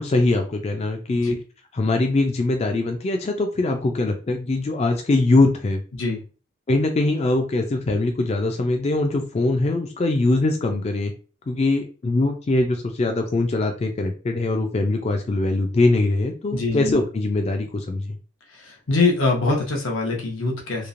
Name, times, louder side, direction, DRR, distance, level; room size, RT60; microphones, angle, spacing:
voice 1, 0.0-1.4 1.7-5.8 6.7-11.1 11.5-18.2, left 2 dB, 35° left, 4 dB, 0.3 m, -22 dB
voice 2, 16.5-17.0 18.5-20.9, left 3 dB, 90° left, 0 dB, 0.8 m, -23 dB
3.0 x 2.0 x 2.5 m, 0.36 s
head